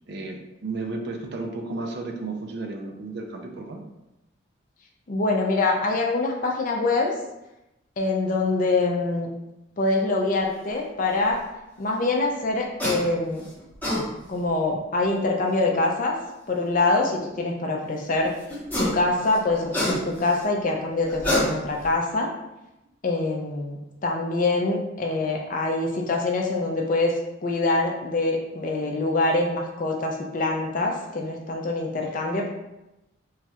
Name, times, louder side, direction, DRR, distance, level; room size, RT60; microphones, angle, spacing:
voice 1, 0.1-3.8 31.0-31.2, right 3 dB, 55° right, 3 dB, 0.4 m, -33 dB
voice 2, 5.1-7.1 8.0-9.3 9.8-11.4 11.8-13.4 14.3-16.1 16.5-18.3 18.8-22.3 23.0-27.1 27.4-32.5, left 2 dB, 40° left, 1 dB, 0.4 m, -24 dB
sound 1, 12.8-13.0 13.6-14.0 15.4-15.5 18.5-19.0 19.3-20.3 21.1-21.9, left 1 dB, 10° left, 0.8 m, -25 dB
3.1 x 2.3 x 2.8 m, 0.93 s
head